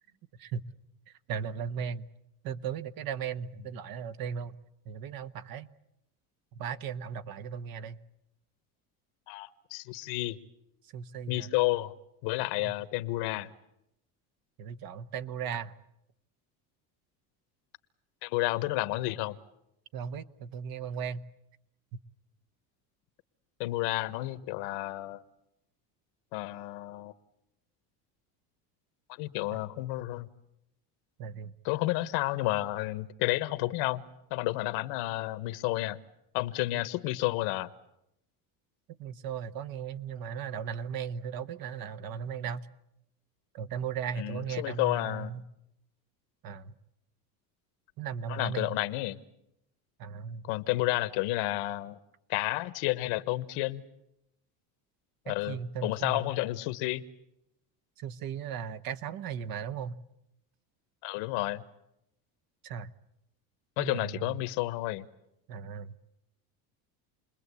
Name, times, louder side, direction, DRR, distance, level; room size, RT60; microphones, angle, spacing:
voice 1, 1.3-2.1 2.4-4.6 4.8-5.7 6.6-8.0 10.9-11.5 12.6-12.8 14.6-15.7 19.9-21.3 31.2-31.5 36.7-36.8 39.0-42.7 43.5-45.4 46.4-46.7 48.0-48.8 50.0-50.5 55.3-56.2 58.0-60.0 62.6-62.9 63.8-64.3 65.5-65.9, right 7 dB, 55° right, 1.2 m, -37 dB
voice 2, 9.3-10.4 11.3-11.9 12.2-13.5 18.2-19.3 23.6-25.2 26.3-27.1 29.1-30.3 31.6-34.0 34.3-36.0 36.3-37.7 44.2-45.3 48.3-49.2 50.4-52.0 52.3-53.8 55.3-57.0 61.0-61.6 63.8-65.0, left 18 dB, 80° left, 1.4 m, -31 dB
29.0 x 21.0 x 8.4 m
cardioid pair, 120°, 42 cm